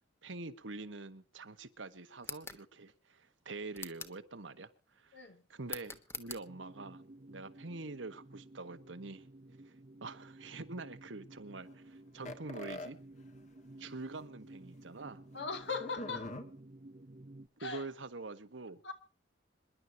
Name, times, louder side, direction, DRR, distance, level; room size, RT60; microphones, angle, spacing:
voice 1, 0.2-5.2 5.5-7.0 7.3-9.3 9.6-9.7 10.0-13.0 13.8-15.2 17.6-18.8, right 3 dB, 85° right, 1.5 m, -45 dB
sound 1, 2.2-2.6 3.7-4.2 5.7-6.4, left 4 dB, 15° left, 1.2 m, -44 dB
voice 2, 5.1-5.4 15.3-16.3 17.6-17.9 18.8-18.9, left 4 dB, 70° left, 2.3 m, -39 dB
sound 2, 6.5-17.5, right 1 dB, 40° right, 0.8 m, -54 dB
sound 3, 12.2-12.9 13.8-13.9 14.2-14.3 15.8-16.4, left 1 dB, 40° left, 1.8 m, -42 dB
26.5 x 11.0 x 2.9 m
head